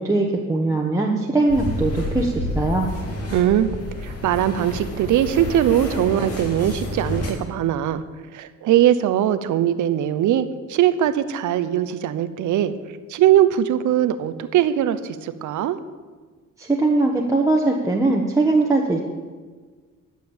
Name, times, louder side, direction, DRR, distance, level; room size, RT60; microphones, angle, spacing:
voice 1, 0.0-2.9 16.6-19.0, right 2 dB, 10° right, -2 dB, 1.3 m, -20 dB
sound 1, 1.5-7.3, left 1 dB, 55° left, 2.5 m, -29 dB
voice 2, 3.3-3.7 4.0-8.0 8.3-12.7 13.1-15.8, right 11 dB, 80° right, 13 dB, 0.8 m, -20 dB
11.5 x 7.5 x 7.2 m, 1.5 s
cardioid pair, 90°, 30 cm